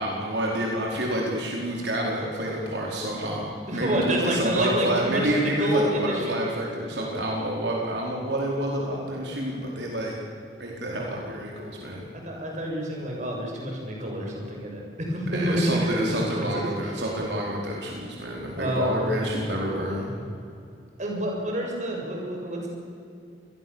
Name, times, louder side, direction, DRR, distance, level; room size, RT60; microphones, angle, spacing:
voice 1, 0.0-10.1 10.6-12.0 15.3-20.1, right 1 dB, 75° right, -2 dB, 4.7 m, -28 dB
voice 2, 3.7-6.5 12.2-16.0 16.3-16.6 18.6-19.0 21.0-22.7, equal, 45° right, 0 dB, 6.9 m, -28 dB
27.0 x 21.0 x 7.3 m, 2.5 s
head